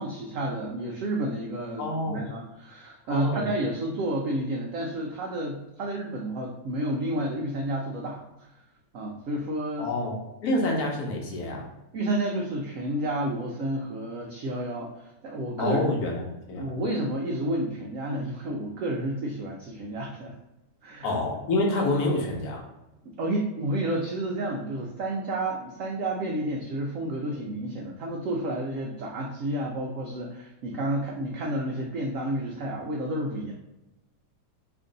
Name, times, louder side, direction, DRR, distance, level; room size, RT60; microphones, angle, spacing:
voice 1, 0.0-8.5 8.9-9.9 11.9-15.9 16.5-20.3 20.8-21.1 23.1-33.5, right 1 dB, 80° right, 0 dB, 0.7 m, -30 dB
voice 2, 1.8-2.3 3.1-3.5 9.8-11.7 15.6-16.2 16.5-16.8 21.0-22.6, left 2 dB, 65° left, 0 dB, 1.1 m, -27 dB
3.0 x 2.5 x 3.7 m, 0.99 s
omnidirectional pair, 1.9 m